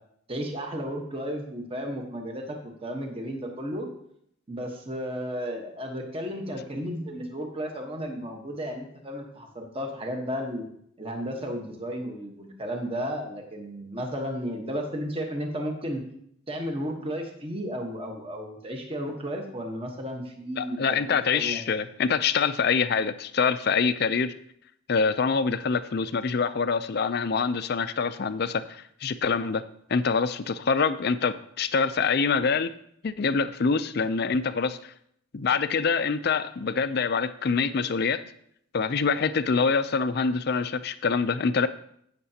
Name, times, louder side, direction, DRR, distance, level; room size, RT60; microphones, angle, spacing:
voice 1, 0.3-3.9 4.5-10.6 11.0-16.0 16.5-21.6, equal, 25° right, 2 dB, 1.2 m, -33 dB
voice 2, 20.6-24.3 24.9-29.6 29.9-32.7 33.0-34.9 35.3-38.2 38.7-41.7, left 5 dB, 50° left, 12 dB, 0.4 m, -25 dB
16.0 x 6.7 x 2.8 m, 0.71 s
head